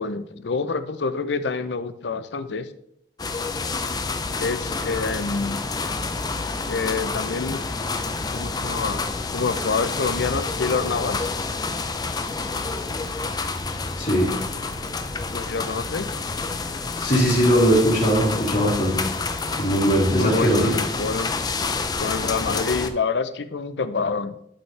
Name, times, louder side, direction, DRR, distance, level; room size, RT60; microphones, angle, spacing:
voice 1, 0.0-2.7 4.4-5.6 6.7-7.6 8.3-11.3 15.3-16.1 20.1-21.5 22.0-24.4, left 4 dB, 80° left, 12 dB, 0.6 m, -27 dB
sound 1, 3.2-22.9, left 4 dB, 20° left, 0.5 m, -28 dB
voice 2, 14.0-14.3 17.0-19.0 19.6-20.7, right 1 dB, 45° left, -5 dB, 2.9 m, -20 dB
11.5 x 5.5 x 3.3 m, 0.74 s
head